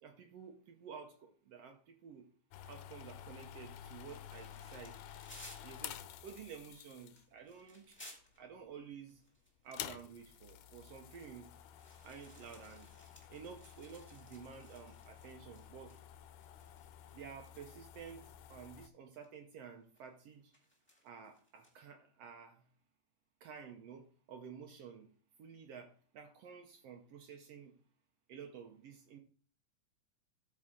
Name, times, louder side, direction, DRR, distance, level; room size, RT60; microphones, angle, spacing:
voice 1, 0.0-2.3 2.6-5.0 5.6-8.0 8.4-9.2 9.6-11.5 12.0-12.9 13.3-15.9 17.1-18.2 18.5-20.5 21.0-22.6 23.4-25.1 25.4-27.7 28.3-29.2, right 6 dB, 80° right, 1.4 m, -52 dB
sound 1, 2.5-7.4 8.2-8.6 8.9-9.0 9.6-18.9, left 11 dB, 80° left, 2.0 m, -51 dB
sound 2, 3.7-8.5 9.0-16.1 16.4-17.1 18.0-18.1 19.1-19.4 19.9-21.8, left 1 dB, 5° left, 1.2 m, -60 dB
12.5 x 5.0 x 3.6 m
omnidirectional pair, 3.8 m